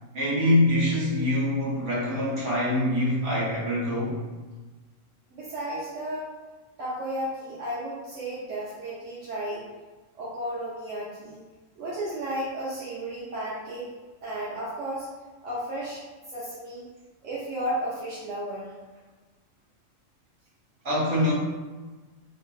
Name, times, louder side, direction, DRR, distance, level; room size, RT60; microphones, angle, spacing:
voice 1, 0.1-4.2 20.8-21.3, left 1 dB, 50° right, -6 dB, 1.2 m, -24 dB
voice 2, 5.3-6.3 6.8-9.6 10.2-11.4 11.8-13.9 14.2-15.1 15.4-16.0 16.3-16.9 17.2-18.7, right 1 dB, 75° right, -8 dB, 1.0 m, -33 dB
2.9 x 2.5 x 2.3 m, 1.3 s
omnidirectional pair, 1.4 m